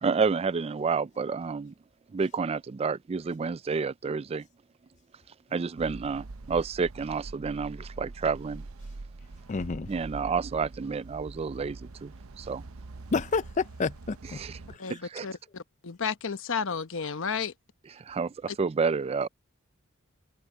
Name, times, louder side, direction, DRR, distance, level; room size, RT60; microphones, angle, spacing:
voice 1, 0.0-1.7 2.1-4.5 5.5-8.6 9.9-12.6 14.2-14.6 14.9-15.3 18.0-19.3, right 5 dB, 30° right, 0.3 m, -30 dB
sound 1, 5.8-14.8, right 3 dB, 70° right, 0.7 m, -44 dB
voice 2, 9.5-9.9 13.1-14.4 14.7-14.9, left 4 dB, 35° left, 0.4 m, -30 dB
voice 3, 14.8-17.5, left 6 dB, 65° left, 1.0 m, -32 dB
head